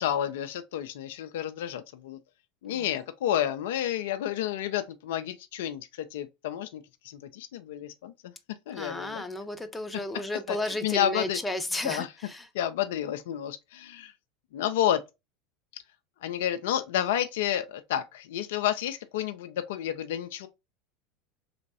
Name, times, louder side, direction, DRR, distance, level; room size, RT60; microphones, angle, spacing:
voice 1, 0.0-2.2 2.6-8.1 8.7-9.2 10.5-11.4 11.8-12.1 12.5-14.1 14.5-15.0 15.7-15.8 16.2-20.5, left 11 dB, 70° left, 0.3 m, -30 dB
voice 2, 8.7-12.5, left 1 dB, 10° left, 0.6 m, -33 dB
3.3 x 2.9 x 2.6 m
hypercardioid pair, 80°, 0 cm